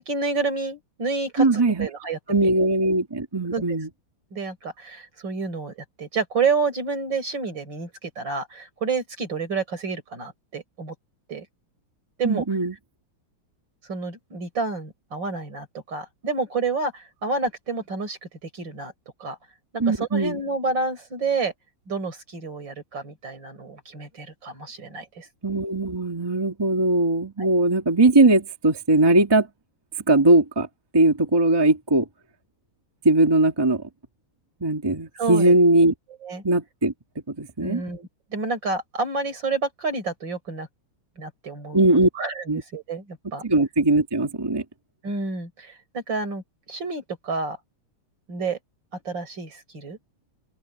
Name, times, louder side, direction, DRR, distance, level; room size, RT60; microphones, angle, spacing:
voice 1, 0.0-2.2 3.5-3.8 4.3-10.9 11.3-11.5 12.2-12.4 13.9-18.9 19.2-19.4 19.7-21.5 21.9-25.3 35.2-35.6 36.2-36.4 37.6-40.7 41.2-41.8 42.2-43.4 45.0-46.4 46.7-47.6 48.3-48.6 49.1-50.0, right 4 dB, 60° right, 5.4 m, -29 dB
voice 2, 1.4-1.9 2.3-3.9 12.2-12.8 19.8-20.4 25.4-29.5 30.1-30.7 30.9-32.1 33.0-33.8 34.6-35.9 36.4-36.9 37.3-37.8 41.7-42.1 42.5-42.6 43.4-44.6, right 2 dB, 10° right, 1.6 m, -20 dB
open air
omnidirectional pair, 2.3 m